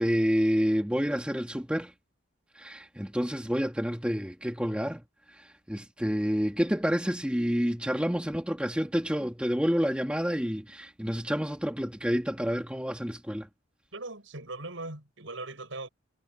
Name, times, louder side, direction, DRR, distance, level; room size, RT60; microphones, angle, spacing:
voice 1, 0.0-1.9 2.6-5.0 5.3-13.5, equal, 5° right, 1.5 m, -29 dB
voice 2, 13.9-15.9, right 2 dB, 75° right, 6.9 m, -39 dB
head